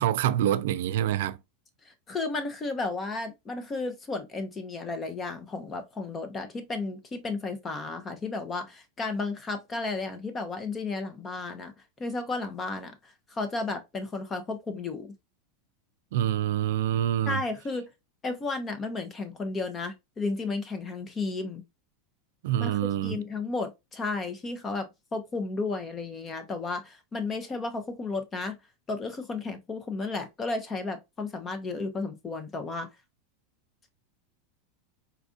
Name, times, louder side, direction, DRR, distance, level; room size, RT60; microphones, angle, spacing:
voice 1, 0.0-1.4 16.1-17.4 22.4-23.2, right 11 dB, 65° right, 0.3 m, -26 dB
voice 2, 2.1-11.7 12.0-15.1 17.3-17.9 18.2-21.6 22.6-28.6 28.9-32.9, left 3 dB, 15° left, 0.6 m, -33 dB
4.3 x 2.4 x 2.4 m
supercardioid pair, 175°, 0 cm